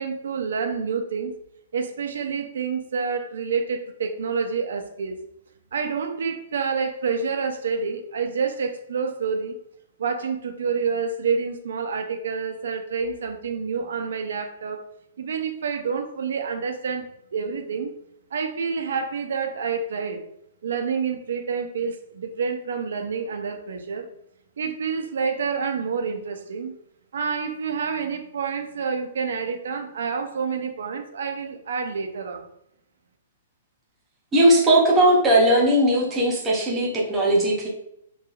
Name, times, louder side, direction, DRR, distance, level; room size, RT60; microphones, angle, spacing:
voice 1, 0.0-1.4 1.7-5.2 5.7-9.6 10.0-14.8 15.2-17.1 17.3-17.9 18.3-20.2 20.6-24.1 24.6-26.8 27.1-32.5, right 5 dB, 70° right, 5 dB, 0.3 m, -28 dB
voice 2, 34.3-37.7, right 1 dB, 10° right, -3 dB, 0.5 m, -18 dB
3.0 x 2.2 x 2.3 m, 0.76 s
hypercardioid pair, 175°, 0 cm